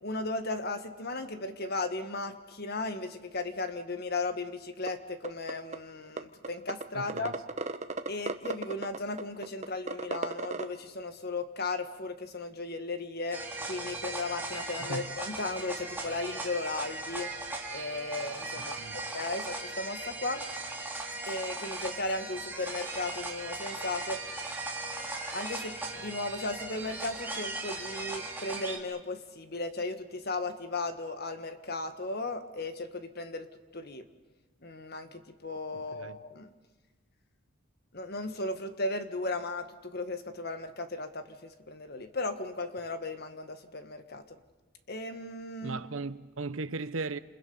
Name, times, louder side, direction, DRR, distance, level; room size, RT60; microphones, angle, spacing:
voice 1, 0.0-7.4 8.1-17.3 17.7-20.4 21.3-24.2 25.3-33.5 33.7-34.0 34.6-36.5 37.9-44.4 44.9-45.8, left 2 dB, 45° left, 1.6 m, -36 dB
sound 1, 4.9-5.0 5.2-5.7 6.2-6.3 6.4-6.8 7.1-10.7, right 3 dB, 30° right, 0.9 m, -33 dB
voice 2, 6.9-7.4 14.8-15.2 18.5-19.0 35.9-36.2 45.6-47.2, right 3 dB, 70° right, 0.9 m, -37 dB
sound 2, 13.3-28.8, right 2 dB, 10° right, 2.5 m, -38 dB
29.0 x 28.0 x 5.5 m
head